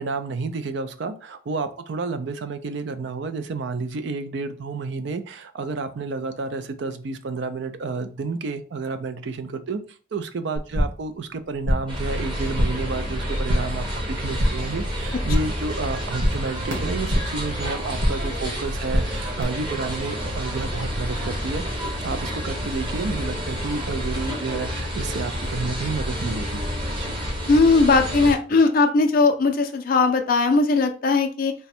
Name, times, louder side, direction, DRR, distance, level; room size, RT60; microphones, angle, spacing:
voice 1, 0.0-9.8 10.1-21.6 22.0-26.6 27.0-27.1, right 4 dB, 60° right, 10 dB, 0.4 m, -30 dB
sound 1, 10.6-11.1 11.4-12.0 12.3-12.9 13.2-13.8 14.1-14.8 15.0-15.7 15.9-17.4 17.7-18.4 18.6-19.4, equal, 90° right, 1.5 m, -25 dB
sound 2, 11.9-28.4, equal, 25° right, 0.9 m, -29 dB
voice 2, 27.5-31.5, left 3 dB, 45° left, 4 dB, 0.4 m, -19 dB
3.4 x 2.1 x 4.2 m, 0.39 s
head